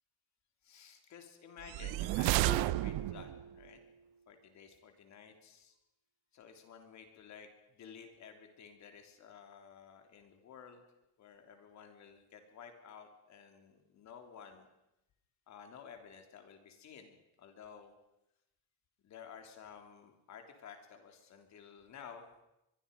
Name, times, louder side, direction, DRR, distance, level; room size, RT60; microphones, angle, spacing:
voice 1, 0.6-3.8 4.3-5.8 6.3-10.8 11.2-14.7 15.5-17.9 19.0-22.4, left 7 dB, 45° left, 5 dB, 3.3 m, -53 dB
sound 1, 1.6-3.4, right 17 dB, 75° right, 0.8 m, -31 dB
Marimba xylophone, 2.5-4.2, right 7 dB, 20° right, 1.4 m, -44 dB
24.5 x 22.5 x 5.3 m, 0.89 s
cardioid pair, 160°, 38 cm